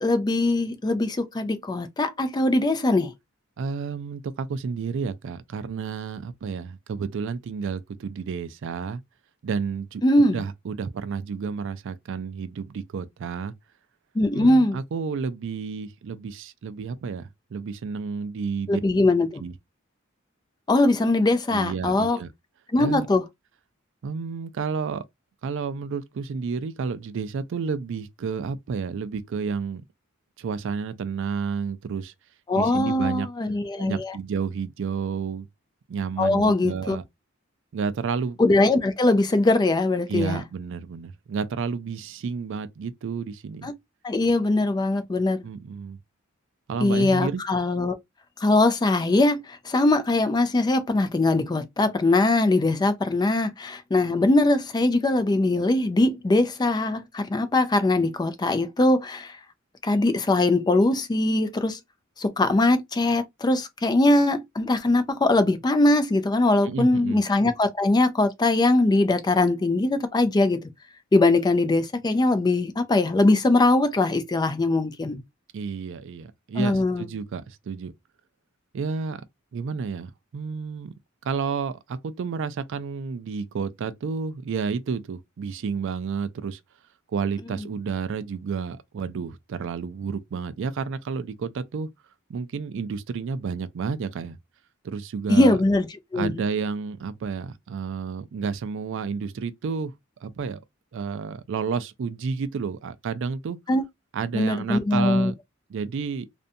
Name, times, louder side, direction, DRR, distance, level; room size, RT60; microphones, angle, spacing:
voice 1, 0.0-3.1 10.0-10.4 14.2-14.8 18.7-19.4 20.7-22.2 22.7-23.2 32.5-34.2 36.2-37.0 38.4-40.4 43.6-43.7 44.0-45.5 46.8-48.0 48.4-59.3 59.8-61.8 62.2-70.6 71.1-75.2 76.6-77.1 95.3-95.9 96.1-96.3 103.7-103.8 104.3-105.3, left 2 dB, 20° left, 0.4 m, -21 dB
voice 2, 3.6-9.0 9.4-13.5 14.3-18.8 19.4-19.5 21.5-22.3 22.8-23.1 24.0-25.0 25.4-29.8 30.4-32.1 32.6-33.3 33.8-35.5 35.9-37.0 37.7-38.4 40.1-43.7 45.4-46.0 46.7-47.4 66.6-67.2 75.5-77.9 78.7-79.2 79.5-80.9 81.2-86.6 87.1-91.9 92.3-94.4 94.8-95.6 96.1-99.9 100.2-100.6 100.9-103.6 104.1-105.3 105.7-106.3, right 5 dB, 65° right, 0.4 m, -31 dB
2.6 x 2.2 x 2.6 m
head